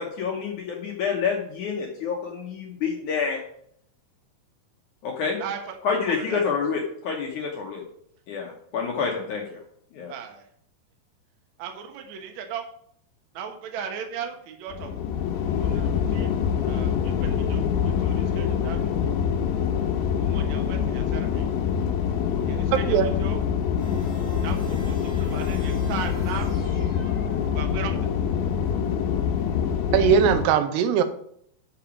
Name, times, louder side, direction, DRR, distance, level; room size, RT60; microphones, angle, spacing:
voice 1, 0.0-3.4 5.0-5.4 5.8-7.8 8.3-9.6 9.9-10.1, left 6 dB, 75° left, 0 dB, 1.8 m, -28 dB
voice 2, 5.4-6.4 10.1-10.4 11.6-12.6 13.3-14.9 15.3-16.3 16.6-18.9 20.2-21.5 22.5-23.4 24.4-26.6 27.5-28.0, right 7 dB, 70° right, 3 dB, 1.8 m, -37 dB
sound 1, 14.7-30.5, left 8 dB, 90° left, 3.1 m, -25 dB
sound 2, 23.8-28.1, right 1 dB, 15° right, 1.8 m, -45 dB
voice 3, 29.9-31.0, right 8 dB, 85° right, 10 dB, 2.7 m, -19 dB
6.7 x 5.9 x 7.1 m, 0.68 s
omnidirectional pair, 4.9 m